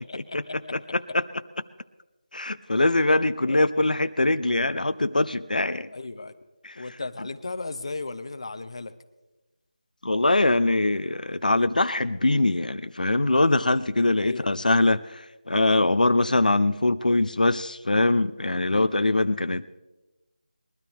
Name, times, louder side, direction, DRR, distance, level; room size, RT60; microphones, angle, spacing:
voice 1, 0.1-0.7 3.5-3.7 5.9-6.3 6.8-8.9 14.2-14.7 18.7-18.9, left 3 dB, 40° left, 11 dB, 0.8 m, -36 dB
voice 2, 0.7-1.2 2.3-5.9 6.6-6.9 10.0-19.8, left 2 dB, 85° left, 12 dB, 0.7 m, -23 dB
21.5 x 12.5 x 3.5 m, 1.1 s
figure-of-eight pair, 175°, 4 cm